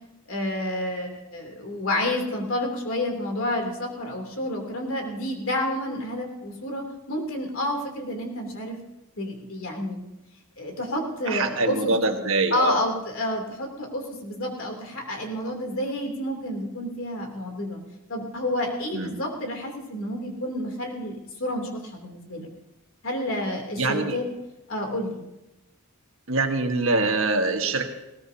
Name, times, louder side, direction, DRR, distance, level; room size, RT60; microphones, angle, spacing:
voice 1, 0.3-8.8 9.2-10.0 10.6-11.9 12.5-17.8 18.1-22.5 23.0-24.2 24.7-25.2, left 1 dB, 65° left, 2 dB, 3.0 m, -29 dB
voice 2, 11.3-12.8 18.9-19.1 23.8-24.2 26.3-27.9, right 3 dB, 65° right, 4 dB, 1.5 m, -24 dB
19.5 x 17.5 x 2.8 m, 0.96 s
head